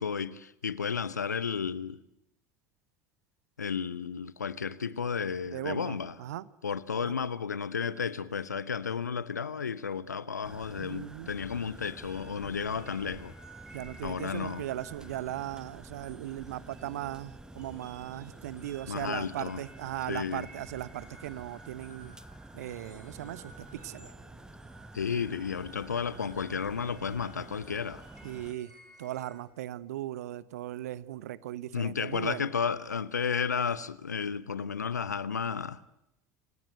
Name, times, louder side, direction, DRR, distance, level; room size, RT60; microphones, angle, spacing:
voice 1, 0.0-2.0 3.6-6.2 6.6-13.3 14.0-14.7 18.9-19.6 20.1-20.5 24.9-28.0 31.7-35.8, left 6 dB, 80° left, 0.9 m, -33 dB
voice 2, 5.4-6.5 7.0-7.1 10.8-11.3 13.7-22.1 22.5-24.1 28.2-28.7 29.0-32.5, right 13 dB, 65° right, 0.9 m, -38 dB
sound 1, 10.4-28.5, right 2 dB, 10° right, 1.3 m, -50 dB
sound 2, 11.4-29.4, right 2 dB, 85° right, 6.5 m, -55 dB
29.0 x 18.0 x 9.1 m
figure-of-eight pair, 70°, 9 cm